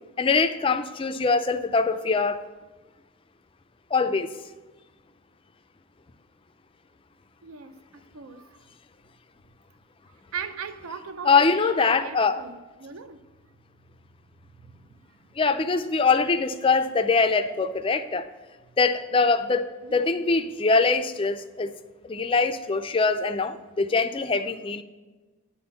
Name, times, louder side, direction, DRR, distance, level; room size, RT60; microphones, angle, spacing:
voice 1, 0.2-2.5 3.9-4.3 11.2-12.4 15.4-18.3 18.8-21.7 22.0-24.8, left 4 dB, 25° left, 9 dB, 0.3 m, -23 dB
voice 2, 7.4-8.6 10.3-13.2 14.6-14.9 19.8-20.2, right 6 dB, 70° right, 11 dB, 0.5 m, -39 dB
10.0 x 4.3 x 6.9 m, 1.3 s
head